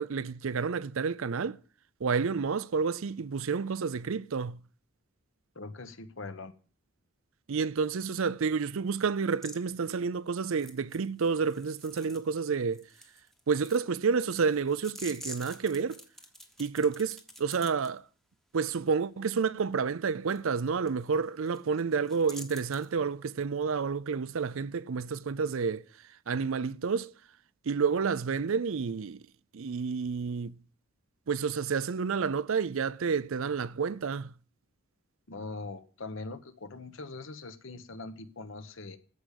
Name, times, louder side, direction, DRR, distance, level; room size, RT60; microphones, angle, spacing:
voice 1, 0.0-1.6 2.0-4.6 7.5-12.8 13.5-16.0 16.6-18.0 18.5-25.8 26.3-27.1 27.7-29.2 29.5-30.6 31.3-34.3, right 5 dB, 70° right, 0.5 m, -30 dB
voice 2, 5.5-6.6 35.3-39.0, left 3 dB, 60° left, 1.1 m, -42 dB
sound 1, 9.3-9.6 10.5-12.4 12.7-17.9 20.3-20.4 20.9-21.0 21.2-21.6 21.9-22.9, equal, ahead, 1.0 m, -48 dB
14.0 x 5.0 x 8.3 m
head